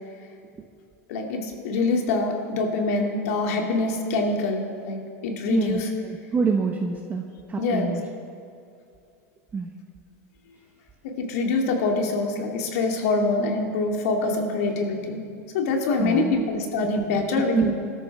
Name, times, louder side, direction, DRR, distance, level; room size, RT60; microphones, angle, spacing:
voice 1, 1.1-5.9 7.6-7.9 11.2-15.2 15.5-17.7, left 3 dB, 70° left, 1 dB, 2.5 m, -25 dB
voice 2, 5.5-8.0 9.5-9.7 16.0-16.3 16.9-17.0 17.5-17.7, right 5 dB, 20° right, 2 dB, 1.1 m, -26 dB
21.0 x 13.0 x 3.5 m, 2.5 s
hypercardioid pair, 110°, 8 cm